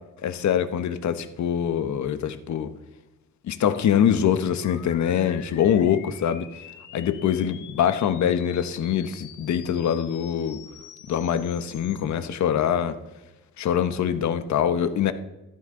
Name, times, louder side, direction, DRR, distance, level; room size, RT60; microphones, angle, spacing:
voice 1, 0.2-2.7 3.4-6.5 6.9-10.6 11.1-13.0 13.6-15.1, left 9 dB, 70° left, 1.3 m, -24 dB
sound 1, 4.6-12.0, left 9 dB, 90° left, 1.8 m, -46 dB
18.5 x 14.0 x 3.9 m
cardioid pair, 90°, 30 cm